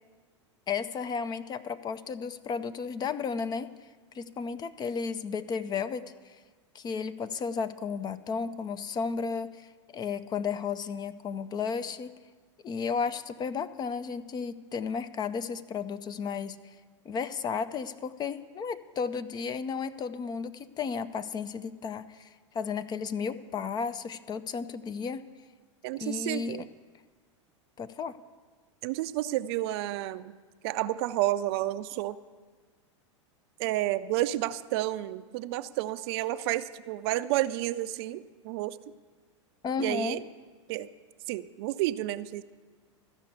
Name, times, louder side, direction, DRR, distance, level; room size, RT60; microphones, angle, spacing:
voice 1, 0.7-3.7 4.1-6.4 6.7-9.7 9.9-12.1 12.6-16.6 17.1-22.3 22.5-25.2 26.0-26.7 27.8-28.2 39.6-40.2, left 5 dB, 25° left, 13 dB, 0.5 m, -33 dB
voice 2, 25.8-26.6 28.8-30.3 30.6-32.2 33.6-38.8 39.8-40.2 40.7-40.9 41.3-42.4, right 15 dB, 55° right, 14 dB, 0.4 m, -30 dB
13.5 x 5.9 x 8.0 m, 1.4 s
hypercardioid pair, 95°, 16 cm